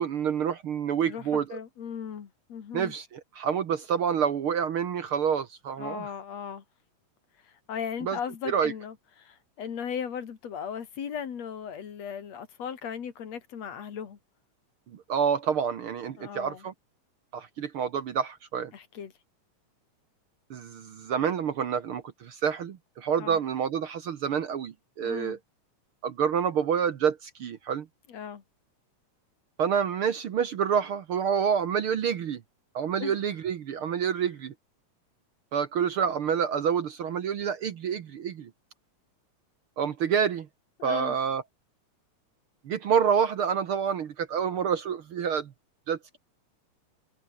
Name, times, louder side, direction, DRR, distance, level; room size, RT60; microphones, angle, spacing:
voice 1, 0.0-1.6 2.7-6.1 8.0-8.2 8.5-8.7 15.1-16.7 17.3-18.7 20.5-25.4 26.0-27.9 29.6-32.4 32.7-34.5 35.5-38.5 39.8-40.5 40.8-41.4 42.7-45.5 45.9-46.2, right 7 dB, 55° right, 1.8 m, -28 dB
voice 2, 1.1-2.9 5.8-6.6 7.4-14.2 16.2-16.7 18.7-19.1 23.2-23.4 25.0-25.4 28.1-28.4 33.0-33.2 40.8-41.2, left 7 dB, 65° left, 3.3 m, -37 dB
omnidirectional pair, 3.3 m